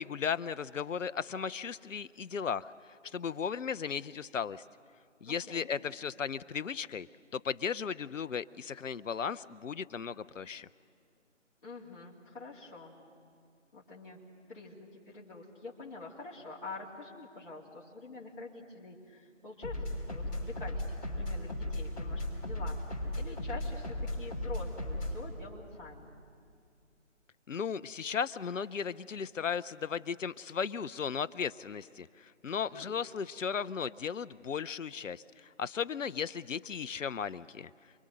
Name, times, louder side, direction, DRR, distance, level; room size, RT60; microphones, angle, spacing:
voice 1, 0.0-2.7 3.1-4.6 5.2-7.1 7.3-10.7 27.5-35.2 35.6-37.7, left 6 dB, 85° left, 16 dB, 0.6 m, -36 dB
voice 2, 5.2-5.7 11.6-13.0 13.7-14.2 14.5-26.1 32.7-33.0, left 3 dB, 40° left, -5 dB, 2.8 m, -46 dB
sound 1, 19.6-25.2, left 1 dB, 20° left, 3.7 m, -36 dB
28.5 x 22.5 x 6.5 m, 2.2 s
figure-of-eight pair, 155°, 37 cm